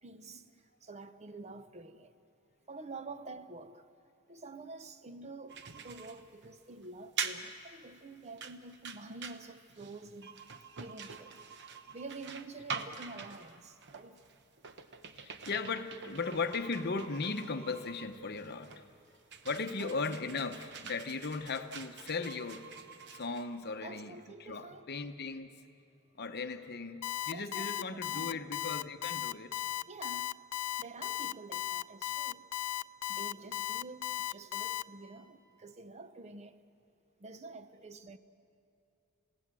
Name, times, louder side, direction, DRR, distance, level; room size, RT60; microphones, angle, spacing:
voice 1, 0.0-2.2 2.7-3.9 4.3-11.5 11.9-14.3 19.8-19.9 23.8-24.9 27.3-28.5 29.9-30.4 30.8-32.5 33.1-36.6 37.2-38.2, right 3 dB, 30° right, 0.8 m, -48 dB
sound 1, 5.5-23.9, right 6 dB, 55° right, 1.0 m, -45 dB
voice 2, 15.0-18.9 19.4-22.7 23.1-24.1 24.4-25.5 26.2-29.5, left 4 dB, 50° left, 1.0 m, -37 dB
Alarm, 27.0-34.8, left 12 dB, 85° left, 0.5 m, -36 dB
28.0 x 17.0 x 7.5 m
head